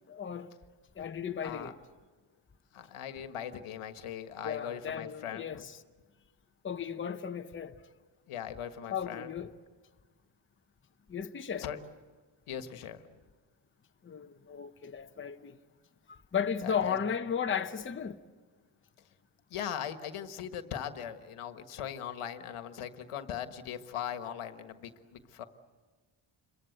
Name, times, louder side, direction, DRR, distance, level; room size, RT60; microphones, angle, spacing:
voice 1, 0.1-0.5 1.0-1.8 4.4-5.8 6.6-7.8 8.9-9.5 11.1-11.7 14.0-15.6 16.1-18.2, left 7 dB, 25° left, 0.9 m, -35 dB
voice 2, 1.4-1.7 2.7-5.6 8.3-9.3 11.6-11.8 12.5-13.0 16.6-17.0 19.5-25.4, left 9 dB, 85° left, 1.6 m, -40 dB
28.0 x 23.0 x 8.0 m
wide cardioid pair, 155°, 50 cm